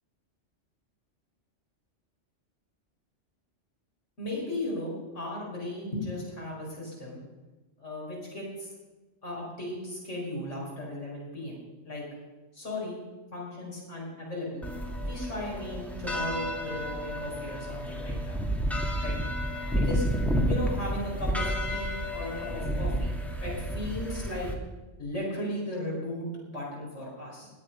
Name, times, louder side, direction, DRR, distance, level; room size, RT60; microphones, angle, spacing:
voice 1, 4.2-7.2 7.8-8.7 9.2-11.6 11.8-12.0 12.5-13.0 13.3-14.7 15.0-18.4 19.0-19.2 19.8-20.0 20.5-23.1 23.4-24.5 25.0-27.5, left 1 dB, 80° left, -4 dB, 5.1 m, -36 dB
sound 1, 14.6-24.5, equal, ahead, 1.6 m, -31 dB
20.5 x 9.0 x 5.4 m, 1.2 s
omnidirectional pair, 1.2 m